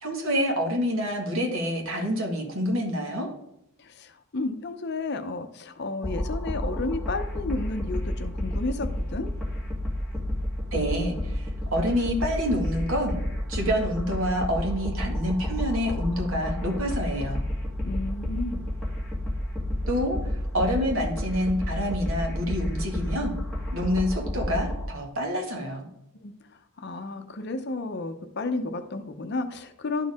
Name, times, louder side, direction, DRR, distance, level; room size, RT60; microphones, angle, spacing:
voice 1, 0.0-3.3 10.7-13.2 13.5-17.4 19.9-20.2 20.5-23.3 23.7-25.9, equal, 70° right, 1 dB, 1.9 m, -27 dB
voice 2, 3.8-9.3 17.8-18.7 26.2-30.1, left 3 dB, 50° left, 8 dB, 0.7 m, -32 dB
sound 1, 6.0-24.8, left 1 dB, 5° right, 1.8 m, -30 dB
12.0 x 4.6 x 3.6 m, 0.82 s
head